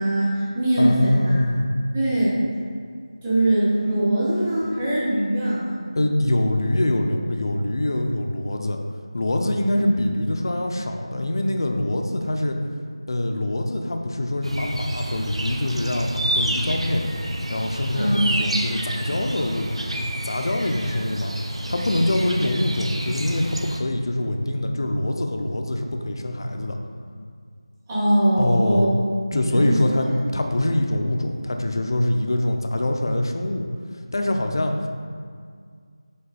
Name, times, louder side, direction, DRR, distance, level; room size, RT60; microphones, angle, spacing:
voice 1, 0.0-1.5 1.9-2.5 3.2-5.7 9.6-9.9 17.9-18.3 27.9-28.9 29.3-30.1, right 1 dB, 10° right, -9 dB, 1.0 m, -22 dB
voice 2, 0.8-1.7 6.0-8.8 9.1-12.6 13.1-17.0 17.5-19.7 19.9-21.3 21.7-26.8 28.4-28.9 29.3-30.1 30.3-33.7 34.1-34.7, left 1 dB, 45° left, 4 dB, 0.5 m, -24 dB
sound 1, 14.4-23.8, right 1 dB, 80° right, 0.7 m, -29 dB
5.3 x 4.3 x 4.2 m, 2.1 s
figure-of-eight pair, 175°, 3 cm